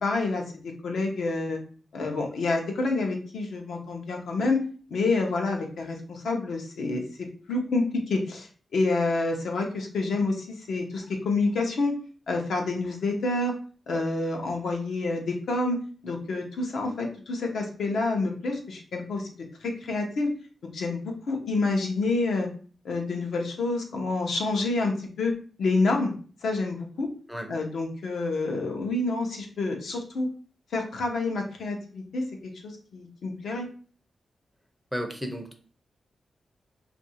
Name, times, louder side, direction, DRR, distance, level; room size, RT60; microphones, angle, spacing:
voice 1, 0.0-1.6 1.9-4.6 4.9-11.9 12.3-13.5 13.9-19.3 19.6-20.3 20.7-22.5 22.8-25.3 25.6-26.1 26.4-27.1 27.5-30.3 30.7-33.7, left 3 dB, 75° left, 2 dB, 0.8 m, -28 dB
voice 2, 34.9-35.5, equal, ahead, 4 dB, 0.5 m, -33 dB
2.7 x 2.6 x 4.2 m, 0.41 s
wide cardioid pair, 155°, 0 cm